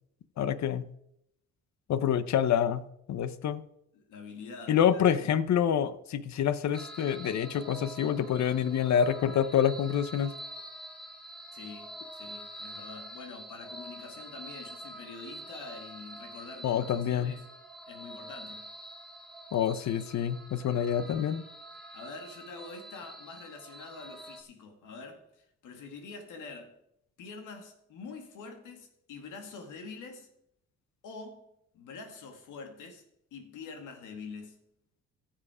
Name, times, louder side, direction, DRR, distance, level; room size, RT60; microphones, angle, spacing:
voice 1, 0.4-0.9 1.9-3.6 4.7-10.4 16.6-17.4 19.5-21.4, left 9 dB, 65° left, 0.9 m, -27 dB
voice 2, 3.9-5.1 11.5-17.5 17.9-18.7 21.9-26.8 27.2-30.3 31.0-31.4 31.7-33.0 33.3-34.6, left 4 dB, 85° left, 2.1 m, -45 dB
sound 1, 6.7-24.4, right 1 dB, ahead, 2.2 m, -46 dB
15.0 x 7.5 x 5.0 m
cardioid pair, 90°, 30 cm